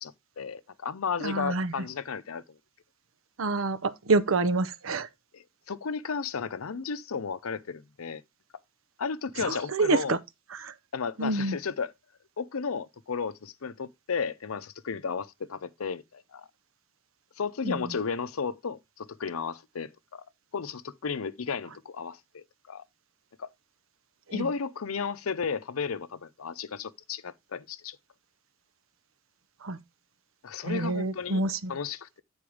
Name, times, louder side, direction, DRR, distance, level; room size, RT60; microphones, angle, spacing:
voice 1, 0.0-2.6 5.3-8.2 9.0-10.2 10.9-11.9 12.4-16.5 17.4-20.2 20.5-22.8 23.4-23.5 24.3-28.0 30.4-31.4 31.7-32.2, left 5 dB, 90° left, 0.6 m, -34 dB
voice 2, 1.2-1.9 3.4-5.1 9.4-10.2 10.5-10.7 11.2-11.6 17.6-18.0 24.3-24.5 29.6-29.8 30.6-31.8, right 3 dB, 80° right, 0.7 m, -28 dB
8.7 x 4.4 x 4.8 m
head